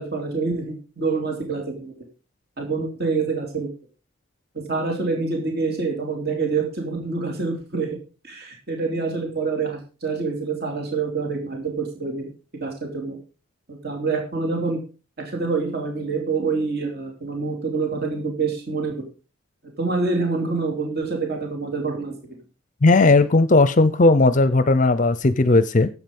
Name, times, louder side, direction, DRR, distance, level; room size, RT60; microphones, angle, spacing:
voice 1, 0.0-1.9 2.6-3.7 4.7-8.0 8.2-12.3 12.6-13.2 13.7-14.8 15.3-18.9 19.8-22.1 24.6-24.7, right 4 dB, 50° right, 2 dB, 3.1 m, -26 dB
voice 2, 22.8-25.9, left 2 dB, 35° left, 15 dB, 0.6 m, -16 dB
12.0 x 8.3 x 5.3 m, 0.35 s
head